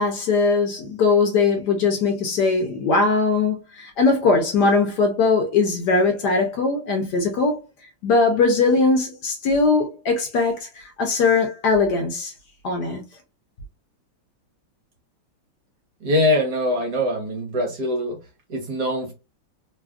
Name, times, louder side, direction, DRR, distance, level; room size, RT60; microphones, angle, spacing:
voice 1, 0.0-7.6 8.0-12.3 12.6-13.0, left 4 dB, 70° left, 1.1 m, -20 dB
voice 2, 16.0-18.2 18.5-19.1, left 1 dB, 60° right, 1.4 m, -23 dB
3.3 x 2.3 x 2.3 m
omnidirectional pair, 2.1 m